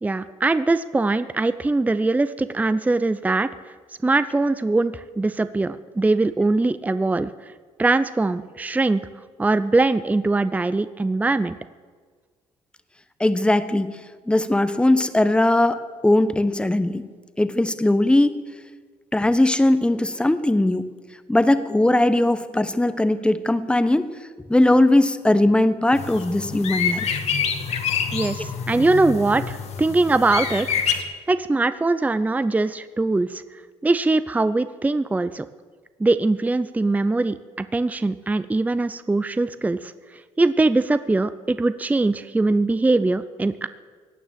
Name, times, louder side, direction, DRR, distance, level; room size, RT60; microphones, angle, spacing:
voice 1, 0.0-3.5 4.0-7.3 7.8-9.0 9.4-11.6 28.1-30.7 31.3-33.4 33.8-35.5 36.0-39.9 40.4-43.7, right 2 dB, 10° right, 13 dB, 0.6 m, -21 dB
voice 2, 13.2-13.9 14.3-17.0 17.4-18.4 19.1-20.9 21.3-24.1 24.5-27.1, left 1 dB, 10° left, 12 dB, 1.1 m, -19 dB
sound 1, 25.9-31.0, left 7 dB, 55° left, 1.9 m, -27 dB
17.0 x 9.2 x 7.5 m, 1.5 s
supercardioid pair, 85°, 13 cm